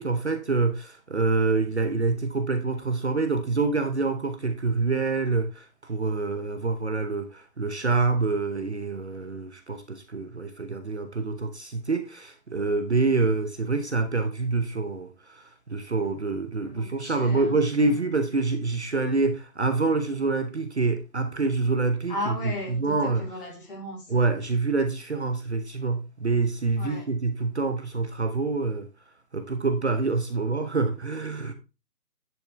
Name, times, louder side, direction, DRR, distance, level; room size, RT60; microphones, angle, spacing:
voice 1, 0.0-23.3 24.1-28.9 29.3-31.5, right 3 dB, 40° right, 1.0 m, -26 dB
voice 2, 16.6-18.0 22.1-24.3 26.8-27.1, left 1 dB, 30° left, 4.3 m, -36 dB
10.5 x 5.9 x 3.4 m
figure-of-eight pair, 160°, 50 cm